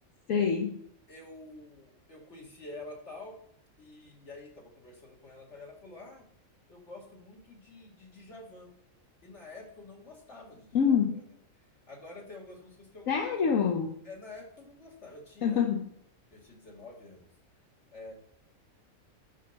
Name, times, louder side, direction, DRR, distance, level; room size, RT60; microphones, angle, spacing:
voice 1, 0.3-0.8 10.7-11.2 13.1-14.0 15.4-15.9, left 7 dB, 75° left, 3 dB, 1.3 m, -26 dB
voice 2, 1.1-3.4 3.8-6.3 6.7-8.7 9.2-11.2 11.9-13.2 14.0-15.6 16.3-17.3 17.9-18.1, left 2 dB, 55° left, -1 dB, 2.6 m, -48 dB
10.5 x 5.9 x 6.6 m, 0.69 s
omnidirectional pair, 1.4 m